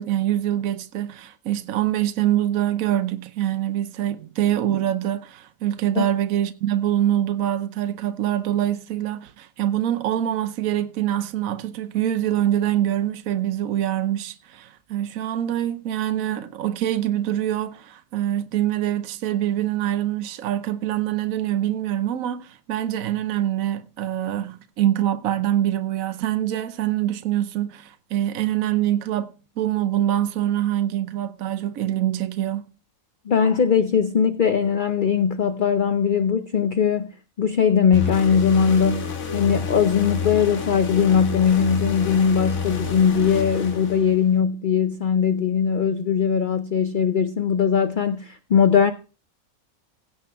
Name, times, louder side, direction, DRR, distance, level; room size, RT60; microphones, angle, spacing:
voice 1, 0.0-32.7, right 12 dB, 75° right, 1.2 m, -24 dB
voice 2, 33.3-48.9, left 7 dB, 45° left, 0.7 m, -20 dB
sound 1, 37.9-44.4, left 5 dB, 80° left, 1.8 m, -29 dB
16.0 x 7.9 x 3.4 m
omnidirectional pair, 1.4 m